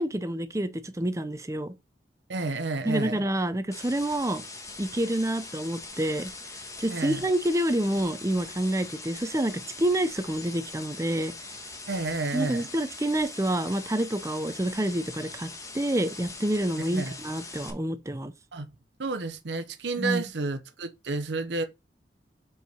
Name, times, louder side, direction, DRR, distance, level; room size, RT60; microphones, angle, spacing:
voice 1, 0.0-1.7 2.9-4.4 4.8-6.3 6.8-11.3 12.3-18.3 20.0-20.2, right 1 dB, 15° right, 0.6 m, -28 dB
voice 2, 2.3-3.2 6.9-7.2 11.9-12.7 16.9-17.2 18.5-18.7 19.0-21.6, right 3 dB, 85° right, 0.9 m, -31 dB
sound 1, 3.7-17.7, left 3 dB, 20° left, 1.3 m, -42 dB
5.4 x 4.8 x 5.1 m
head